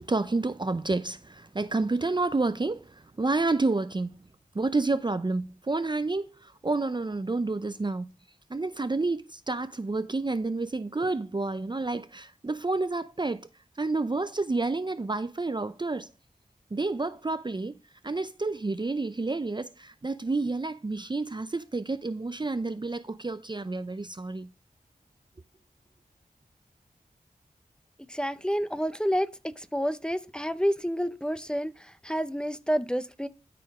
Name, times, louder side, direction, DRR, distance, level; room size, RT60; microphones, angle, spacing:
voice 1, 0.0-4.1 4.5-8.1 8.5-13.5 13.8-16.1 16.7-17.8 18.0-24.5, right 3 dB, 30° right, 0.6 m, -29 dB
voice 2, 28.1-33.3, equal, 5° left, 0.8 m, -29 dB
12.5 x 5.1 x 4.9 m
cardioid pair, 45°, 16 cm